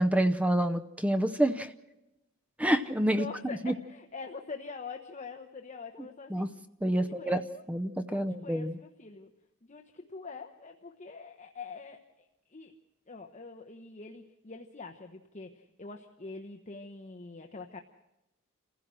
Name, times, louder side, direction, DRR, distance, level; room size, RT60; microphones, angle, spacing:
voice 1, 0.0-1.7 2.6-3.3 3.6-3.7 6.3-6.5 6.8-7.4 7.7-8.8, right 1 dB, 5° right, 11 dB, 0.6 m, -27 dB
voice 2, 3.0-6.5 6.9-7.6 8.1-9.3 9.6-12.0 12.5-12.8 13.1-17.8, left 4 dB, 35° left, 4 dB, 1.0 m, -44 dB
28.0 x 15.5 x 6.2 m, 0.97 s
head